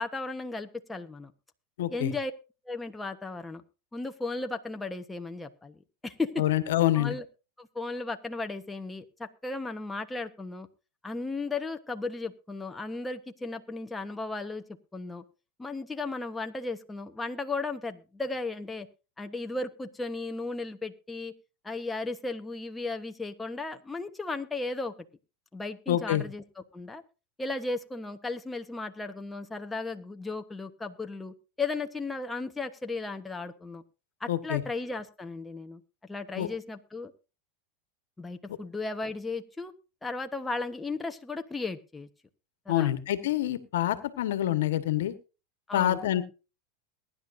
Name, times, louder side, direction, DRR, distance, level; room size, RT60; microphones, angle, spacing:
voice 1, 0.0-1.3 1.9-2.3 2.7-3.6 3.9-6.3 6.9-7.2 7.6-10.7 11.0-14.6 14.9-15.2 15.6-18.9 19.2-21.3 21.6-24.9 25.5-26.4 26.7-27.0 27.4-33.8 34.2-37.1 38.2-39.7 40.0-42.1 42.7-42.9 45.7-46.1, left 3 dB, 10° left, 6 dB, 1.1 m, -35 dB
voice 2, 1.8-2.1 6.4-7.1 25.9-26.2 34.3-34.6 36.4-36.5 42.7-45.1 45.7-46.2, left 13 dB, 75° left, 11 dB, 1.4 m, -26 dB
22.0 x 10.5 x 2.6 m, 0.31 s
hypercardioid pair, 100°, 0 cm